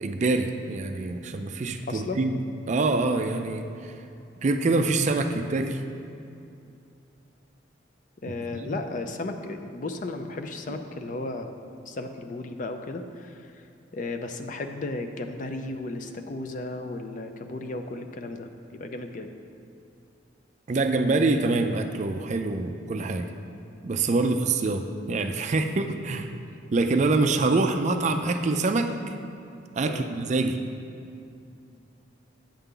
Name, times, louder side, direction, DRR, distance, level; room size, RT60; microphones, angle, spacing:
voice 1, 0.0-2.4 2.7-4.0 4.4-5.8 8.6-8.8 20.7-23.3 23.8-26.3 26.7-28.9 29.8-30.6, right 3 dB, 35° right, 6 dB, 0.4 m, -25 dB
voice 2, 1.9-2.2 8.2-11.5 11.9-13.7 13.9-19.3 24.2-24.4 26.8-27.4 29.8-30.1, left 2 dB, 40° left, 6 dB, 0.4 m, -35 dB
8.9 x 6.8 x 3.8 m, 2.6 s
head